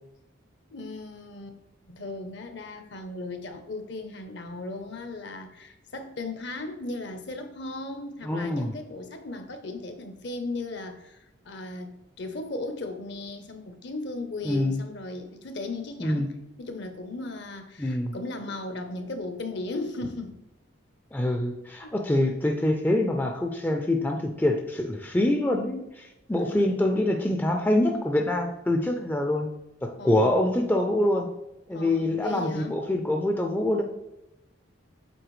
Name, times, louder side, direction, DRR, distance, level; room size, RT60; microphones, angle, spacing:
voice 1, 0.7-1.6 1.9-16.3 16.6-20.4 21.8-21.9 30.0-30.4 31.7-32.8, left 2 dB, 55° left, 7 dB, 0.7 m, -36 dB
voice 2, 8.2-8.7 14.4-14.8 16.0-16.3 17.8-18.2 21.1-29.5 29.8-31.3 31.7-33.8, left 1 dB, 10° left, 3 dB, 0.4 m, -25 dB
7.8 x 4.2 x 3.1 m, 0.95 s
head